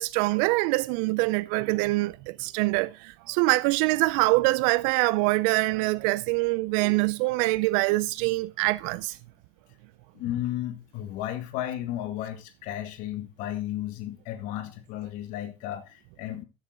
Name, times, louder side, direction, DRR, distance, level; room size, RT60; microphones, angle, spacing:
voice 1, 0.0-9.2, right 22 dB, 55° right, 0.5 m, -24 dB
voice 2, 10.1-16.4, left 12 dB, 55° left, 2.1 m, -34 dB
13.0 x 7.3 x 3.9 m
hypercardioid pair, 105°, 16 cm